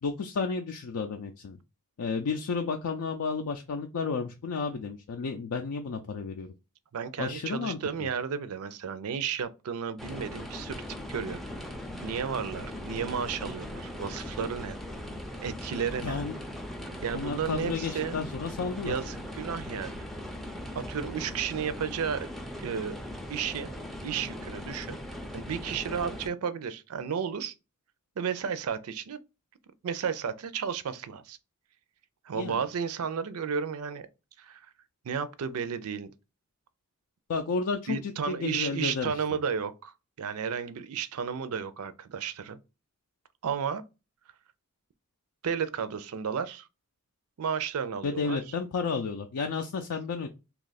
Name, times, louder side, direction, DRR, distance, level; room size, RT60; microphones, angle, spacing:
voice 1, 0.0-1.6 2.0-6.5 7.2-8.1 16.0-16.4 17.1-18.9 32.3-32.6 37.3-39.2 48.0-50.3, left 4 dB, 70° left, 0.4 m, -32 dB
voice 2, 6.9-10.8 11.1-11.4 12.0-14.8 15.4-16.2 17.0-18.1 18.8-20.0 20.7-22.3 22.6-23.0 23.3-23.7 24.0-25.0 25.3-27.5 28.2-29.2 29.8-31.4 32.2-34.1 34.4-34.6 35.0-36.1 37.9-42.6 43.4-43.8 45.4-46.7 47.4-48.4, right 7 dB, 70° right, 0.4 m, -33 dB
sound 1, 10.0-26.3, left 1 dB, ahead, 0.4 m, -39 dB
2.9 x 2.3 x 3.9 m
head